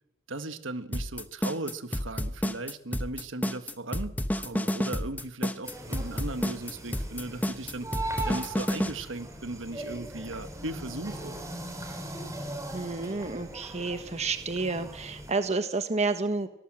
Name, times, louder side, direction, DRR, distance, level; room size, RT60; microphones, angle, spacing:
voice 1, 0.3-11.4, right 2 dB, 70° right, 10 dB, 1.5 m, -37 dB
sound 1, 0.9-8.9, equal, 10° left, 1.0 m, -30 dB
sound 2, 5.6-15.3, right 1 dB, 15° right, 4.0 m, -39 dB
voice 2, 12.7-16.5, right 3 dB, 35° right, 9 dB, 1.3 m, -30 dB
24.0 x 18.5 x 7.7 m, 0.85 s
head